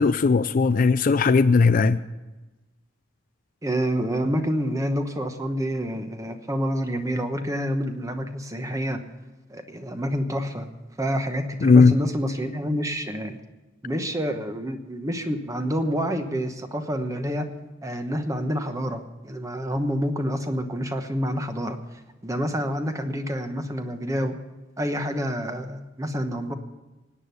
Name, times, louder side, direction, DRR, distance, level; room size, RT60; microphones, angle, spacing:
voice 1, 0.0-2.0 11.6-12.0, left 4 dB, 45° left, 0.4 m, -17 dB
voice 2, 3.6-9.0 9.5-10.7 11.0-13.4 13.8-17.5 17.8-21.8 22.2-24.4 24.8-26.5, equal, 15° right, 1.0 m, -28 dB
17.5 x 9.6 x 6.9 m
head